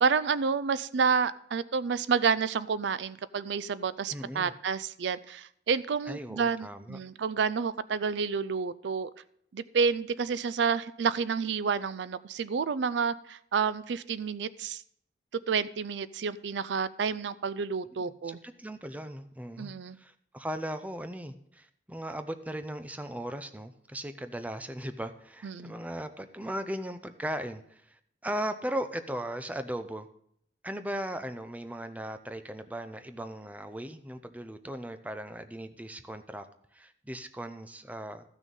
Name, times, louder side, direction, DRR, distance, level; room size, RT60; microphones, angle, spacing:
voice 1, 0.0-9.1 9.5-14.8 15.5-18.4 19.6-20.0 25.4-25.7, right 5 dB, 75° right, 16 dB, 0.4 m, -29 dB
voice 2, 4.1-4.5 6.1-7.0 18.0-30.1 30.6-36.5 36.7-38.2, right 1 dB, 10° right, 9 dB, 0.6 m, -38 dB
14.5 x 6.3 x 5.3 m, 0.68 s
head